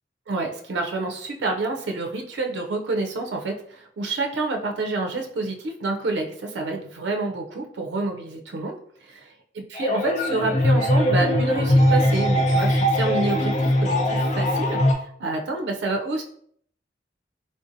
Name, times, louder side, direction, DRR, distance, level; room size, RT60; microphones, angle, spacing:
voice 1, 0.3-8.8 9.1-9.2 9.6-16.2, right 2 dB, 80° right, 3 dB, 0.4 m, -28 dB
sound 1, 9.8-14.9, left 1 dB, 40° left, 0.4 m, -20 dB
3.5 x 2.5 x 2.6 m, 0.63 s
head